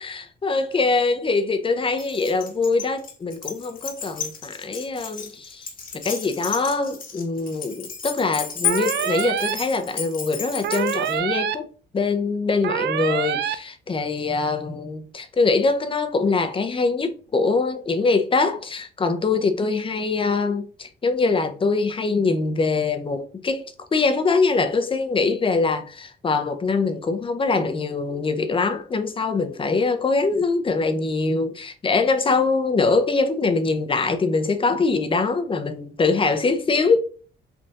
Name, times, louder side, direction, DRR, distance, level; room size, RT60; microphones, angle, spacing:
voice 1, 0.0-5.7 5.9-11.7 11.9-37.0, left 4 dB, 25° left, 0.6 m, -23 dB
Keys jangling, 2.0-11.2, left 7 dB, 45° left, 1.2 m, -33 dB
sound 1, 8.6-9.5 10.6-11.5 12.6-13.5, right 10 dB, 60° right, 0.4 m, -25 dB
3.4 x 2.5 x 4.0 m
cardioid pair, 90°, 20 cm